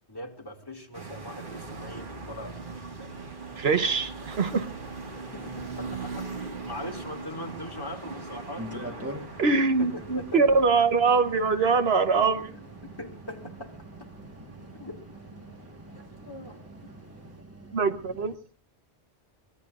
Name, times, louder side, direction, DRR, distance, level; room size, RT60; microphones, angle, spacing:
voice 1, 0.1-2.6 3.0-3.1 5.3-9.4 9.8-10.4 12.8-13.8 14.8-15.0 16.2-16.6, left 1 dB, 20° left, 2 dB, 2.1 m, -41 dB
sound 1, 0.9-17.4, right 4 dB, 50° right, 1.9 m, -42 dB
voice 2, 3.6-4.7 9.4-12.5 17.7-18.4, right 4 dB, 65° right, 9 dB, 1.3 m, -23 dB
sound 2, 8.6-18.4, equal, 15° right, 1.4 m, -44 dB
24.0 x 19.0 x 2.4 m, 0.39 s
omnidirectional pair, 1.1 m